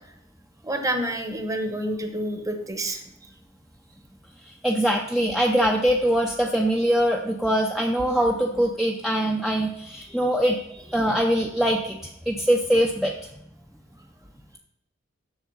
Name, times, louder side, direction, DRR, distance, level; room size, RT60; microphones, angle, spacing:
voice 1, 0.6-3.0, right 1 dB, 15° right, 6 dB, 1.0 m, -28 dB
voice 2, 4.5-13.1, equal, ahead, 0 dB, 0.6 m, -23 dB
8.0 x 6.7 x 5.5 m, 0.80 s
head